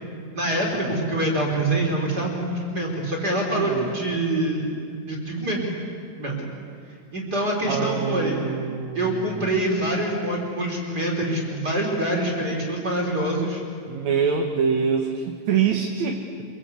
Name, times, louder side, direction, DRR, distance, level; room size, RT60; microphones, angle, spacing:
voice 1, 0.3-4.7 5.1-5.6 6.2-6.4 7.1-8.4 8.9-13.6, right 1 dB, 30° right, -1 dB, 4.3 m, -25 dB
voice 2, 3.5-4.0 7.7-9.5 13.9-16.4, right 6 dB, 60° right, 3 dB, 2.5 m, -25 dB
26.5 x 23.0 x 8.4 m, 2.3 s
omnidirectional pair, 3.9 m